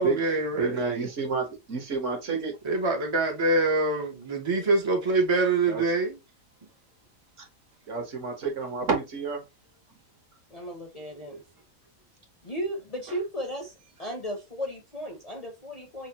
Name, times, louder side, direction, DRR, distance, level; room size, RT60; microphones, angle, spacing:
voice 1, 0.0-0.8 2.6-6.2 11.3-11.4, right 3 dB, 35° right, 0.5 m, -25 dB
voice 2, 0.6-2.5 5.7-5.8 7.9-9.4, right 4 dB, 60° right, 1.4 m, -29 dB
voice 3, 10.5-11.4 12.4-13.7 14.0-16.1, equal, 35° left, 0.6 m, -35 dB
5.6 x 2.1 x 2.7 m
omnidirectional pair, 1.5 m